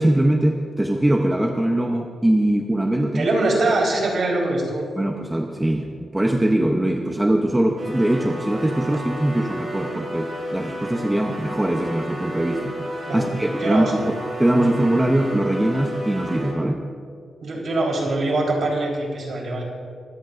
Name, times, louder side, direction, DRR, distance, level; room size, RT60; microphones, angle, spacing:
voice 1, 0.0-3.3 5.0-14.0 14.4-16.8, right 1 dB, 10° right, 2 dB, 0.8 m, -22 dB
voice 2, 3.1-4.8 13.1-14.1 17.4-19.6, right 2 dB, 50° right, -1 dB, 4.0 m, -23 dB
sound 1, 7.8-16.5, equal, 30° right, 4.4 m, -32 dB
24.0 x 16.5 x 2.6 m, 2.2 s
wide cardioid pair, 175°, 0 cm